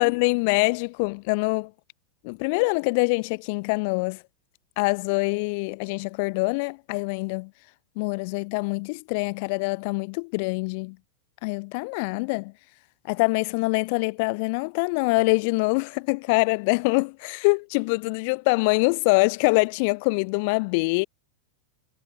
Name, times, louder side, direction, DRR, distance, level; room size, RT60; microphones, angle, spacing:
voice 1, 0.0-1.7 2.2-4.2 4.8-7.5 8.0-11.0 11.4-12.5 13.0-21.0, left 30 dB, 55° left, 0.5 m, -24 dB
hypercardioid pair, 130°, 0 cm